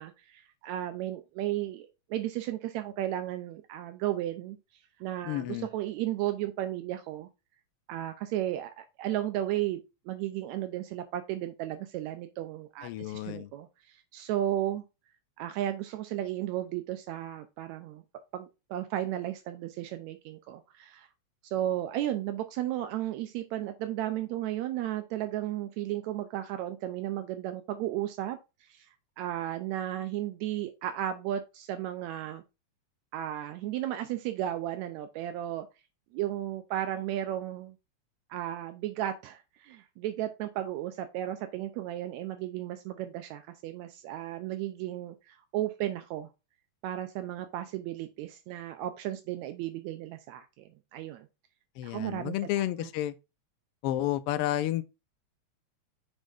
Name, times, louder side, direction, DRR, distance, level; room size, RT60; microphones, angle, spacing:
voice 1, 0.0-4.6 5.0-7.3 7.9-9.8 10.1-14.8 15.4-18.0 18.3-21.1 21.4-32.4 33.1-35.7 36.1-37.8 38.3-46.3 46.8-51.3 51.8-52.9, right 13 dB, 80° right, 1.9 m, -34 dB
voice 2, 5.2-5.7 12.8-13.5 51.8-53.1 53.8-54.8, left 13 dB, 85° left, 1.2 m, -31 dB
6.4 x 6.3 x 2.5 m
omnidirectional pair, 3.3 m